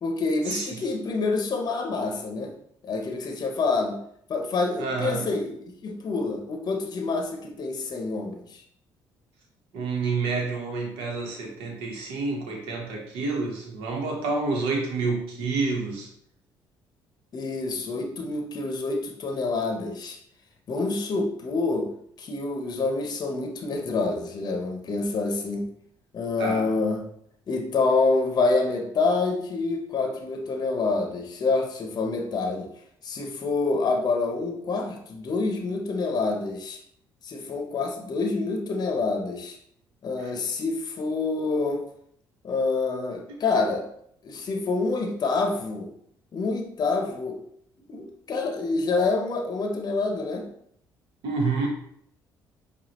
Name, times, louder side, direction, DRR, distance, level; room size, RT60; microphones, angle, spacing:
voice 1, 0.0-2.5 2.8-4.0 4.3-8.6 17.3-20.2 20.7-21.9 22.2-25.7 26.1-27.0 27.5-32.7 33.0-36.8 37.2-39.6 40.0-41.8 42.4-43.9 44.2-45.9 46.3-47.4 47.9-50.5, left 3 dB, 45° left, 4 dB, 0.7 m, -27 dB
voice 2, 4.8-5.3 9.7-16.1 26.4-26.7 40.2-40.3 51.2-51.7, right 4 dB, 80° right, 1 dB, 1.0 m, -28 dB
4.9 x 2.3 x 2.9 m, 0.67 s
supercardioid pair, 65°, 9 cm